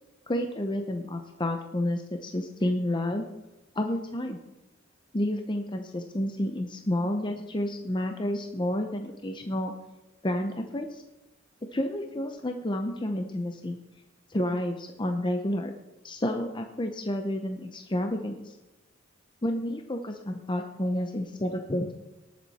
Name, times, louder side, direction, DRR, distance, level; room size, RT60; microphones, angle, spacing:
voice 1, 0.3-3.3 3.7-4.4 5.1-9.7 10.2-11.0 11.7-13.8 14.3-15.7 16.0-18.5 19.4-22.0, left 1 dB, 25° left, 5 dB, 0.8 m, -30 dB
18.5 x 7.6 x 4.2 m, 1.0 s
head